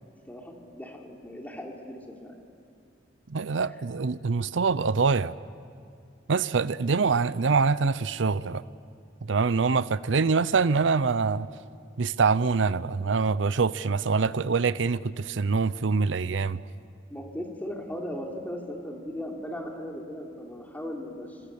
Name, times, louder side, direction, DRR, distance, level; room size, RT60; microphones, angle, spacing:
voice 1, 0.3-2.4 3.6-3.8 7.0-7.1 17.1-21.4, equal, 10° left, 0 dB, 3.3 m, -38 dB
voice 2, 3.3-5.4 6.3-8.6 9.3-11.5 12.0-16.6, right 4 dB, 80° right, 16 dB, 0.6 m, -25 dB
26.5 x 25.5 x 8.5 m, 2.3 s
head